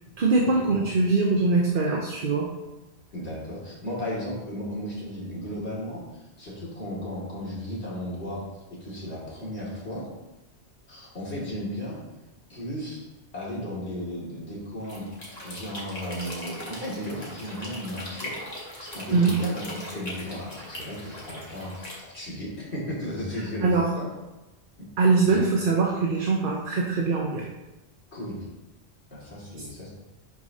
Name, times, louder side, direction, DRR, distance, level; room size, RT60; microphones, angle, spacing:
voice 1, 0.2-2.5 19.1-19.3 23.6-23.9 25.0-27.5, right 3 dB, 55° right, -1 dB, 1.0 m, -22 dB
voice 2, 3.1-8.4 8.8-10.1 10.9-12.0 12.5-13.0 13.3-15.1 15.4-18.4 18.8-24.1 24.8-24.9 25.2-25.4 28.1-28.4 29.1-29.9, equal, 75° left, -6 dB, 2.7 m, -35 dB
sound 1, 14.8-22.0, left 1 dB, 35° left, 2.0 m, -39 dB
11.0 x 5.0 x 2.8 m, 1.0 s
omnidirectional pair, 1.1 m